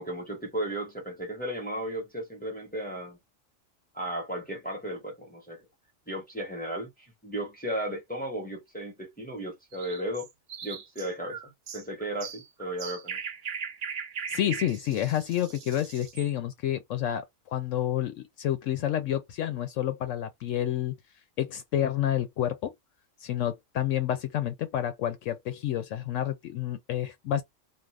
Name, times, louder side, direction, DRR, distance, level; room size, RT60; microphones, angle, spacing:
voice 1, 0.0-3.2 3.9-5.6 6.1-10.3 10.6-13.2, right 1 dB, 10° left, 0.9 m, -35 dB
sound 1, 9.7-16.3, right 7 dB, 55° right, 0.6 m, -39 dB
voice 2, 14.3-20.9 21.4-22.7 23.2-27.4, left 11 dB, 75° left, 0.9 m, -29 dB
2.5 x 2.3 x 3.2 m
omnidirectional pair, 1.4 m